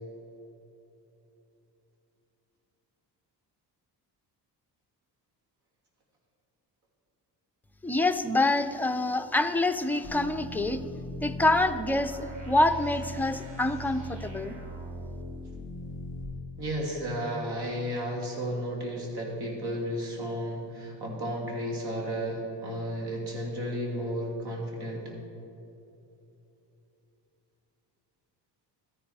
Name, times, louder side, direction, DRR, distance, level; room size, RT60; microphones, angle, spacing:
voice 1, 7.8-10.8 11.2-14.6, left 2 dB, 5° left, 8 dB, 0.4 m, -26 dB
sound 1, 10.0-16.2, equal, 90° right, 2.4 m, -40 dB
voice 2, 16.6-25.1, equal, 65° right, -1 dB, 3.0 m, -33 dB
13.5 x 10.0 x 4.8 m, 2.9 s
cardioid pair, 120°, 42 cm